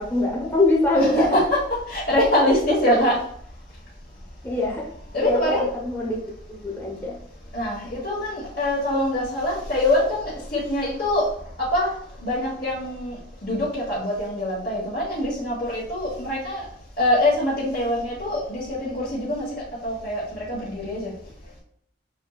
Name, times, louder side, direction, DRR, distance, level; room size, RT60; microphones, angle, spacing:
voice 1, 0.0-1.4 4.4-4.9 5.2-7.2, left 2 dB, 10° left, -3 dB, 0.9 m, -24 dB
voice 2, 0.9-1.6 1.9-3.2 5.1-5.7 7.5-11.2 11.6-11.9 12.2-13.1 13.4-16.6 17.0-19.5 19.8-20.2 20.5-21.1, left 1 dB, 50° left, -8 dB, 1.2 m, -23 dB
6.2 x 2.9 x 2.3 m, 0.66 s
head